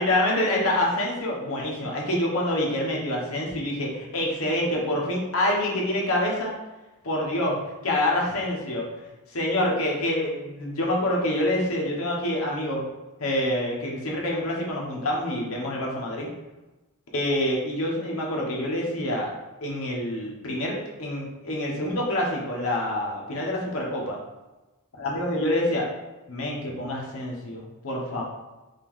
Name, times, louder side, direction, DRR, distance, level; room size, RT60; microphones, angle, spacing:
voice 1, 0.0-6.5 7.0-8.8 9.3-12.8 13.2-16.3 17.1-19.3 19.6-24.2 25.0-25.9 26.3-28.2, left 1 dB, 65° left, -3 dB, 1.2 m, -26 dB
5.4 x 2.6 x 3.7 m, 1.1 s
head